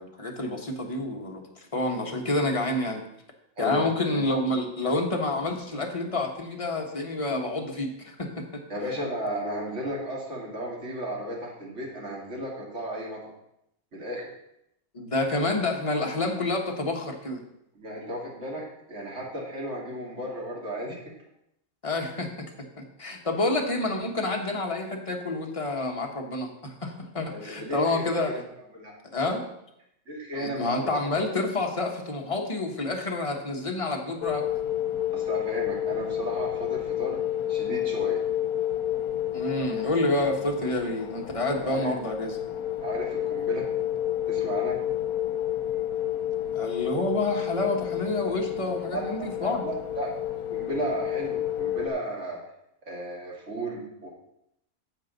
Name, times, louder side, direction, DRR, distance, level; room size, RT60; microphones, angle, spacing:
voice 1, 0.0-3.0 3.6-8.6 14.9-17.4 21.8-22.5 22.8-28.3 29.1-29.4 30.3-34.4 39.3-42.4 46.5-49.6, left 2 dB, 25° left, 1 dB, 1.3 m, -28 dB
voice 2, 8.7-13.3 13.9-14.3 17.7-21.0 27.2-28.4 28.7-29.0 30.1-31.1 35.1-37.2 37.5-38.2 41.6-41.9 42.8-43.7 44.3-44.8 48.7-50.1 50.5-52.4 52.9-54.1, right 1 dB, 55° right, -2 dB, 2.6 m, -34 dB
sound 1, 34.2-51.9, left 11 dB, 85° left, 1.2 m, -30 dB
10.5 x 7.3 x 4.0 m, 0.79 s
omnidirectional pair, 1.5 m